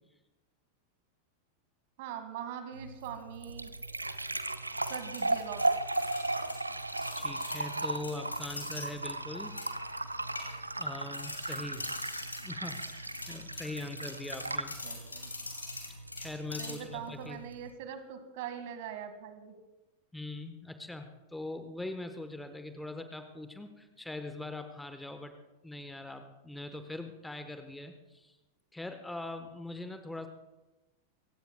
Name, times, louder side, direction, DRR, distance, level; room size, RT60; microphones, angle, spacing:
voice 1, 2.0-3.7 4.9-5.6 14.8-15.3 16.6-19.5, right 9 dB, 50° right, 8 dB, 1.8 m, -42 dB
sound 1, 2.7-17.7, right 2 dB, 85° right, 0.6 m, -36 dB
sound 2, 4.8-8.9 9.4-9.9 10.4-10.9 11.1-17.0, left 2 dB, 80° left, 2.6 m, -43 dB
voice 2, 7.2-9.6 10.8-11.9 12.4-14.8 16.2-17.4 20.1-25.3 25.6-28.4 28.7-30.3, left 2 dB, 5° left, 8 dB, 1.0 m, -42 dB
27.0 x 16.5 x 2.2 m, 1.1 s
figure-of-eight pair, 90°, 0 cm